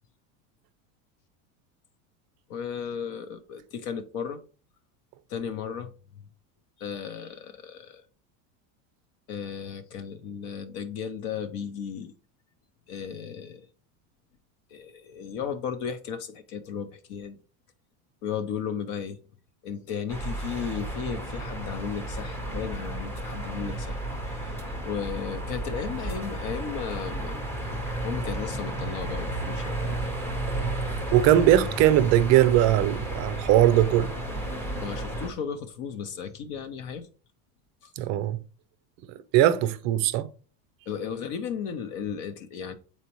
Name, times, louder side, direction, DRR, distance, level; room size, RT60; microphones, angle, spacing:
voice 1, 2.5-4.4 5.3-5.9 6.8-8.0 9.3-12.1 12.9-13.7 14.7-17.3 18.2-19.2 19.6-24.0 24.3-24.5 24.8-27.5 28.0-30.2 34.8-37.1 37.8-37.9 40.9-42.7, left 7 dB, 50° left, 0.8 m, -35 dB
sound 1, 20.1-35.3, right 1 dB, 5° left, 0.7 m, -33 dB
voice 2, 31.1-34.1 38.0-38.4 39.3-40.3, right 12 dB, 40° right, 0.5 m, -20 dB
8.1 x 4.3 x 3.0 m
cardioid pair, 165°, 41 cm